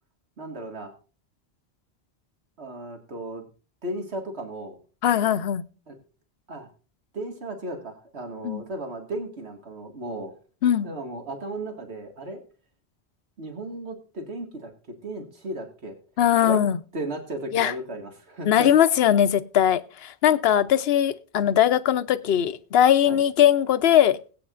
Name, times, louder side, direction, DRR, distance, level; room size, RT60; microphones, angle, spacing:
voice 1, 0.4-0.9 2.6-3.5 3.8-4.8 5.9-6.0 6.5-6.7 7.1-10.3 10.8-12.4 13.4-16.0 16.4-16.6 16.9-18.7 23.1-23.2, right 1 dB, 80° right, 2.2 m, -35 dB
voice 2, 5.0-5.6 8.4-8.6 10.6-10.9 16.2-16.8 17.5-17.7 18.4-24.2, left 10 dB, 70° left, 0.9 m, -20 dB
21.0 x 8.7 x 2.5 m
omnidirectional pair, 1.1 m